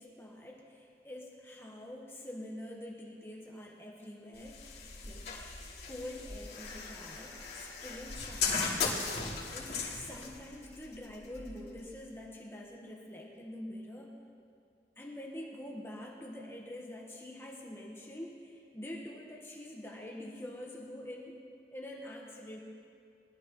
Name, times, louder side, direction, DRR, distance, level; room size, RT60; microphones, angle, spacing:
voice 1, 0.0-4.6 5.0-5.3 5.8-9.0 9.5-14.2 15.0-21.4 21.7-22.6, left 1 dB, 15° left, -2 dB, 1.2 m, -46 dB
sound 1, 4.3-12.2, left 4 dB, 65° left, 3.0 m, -38 dB
21.0 x 12.5 x 3.0 m, 2.4 s
head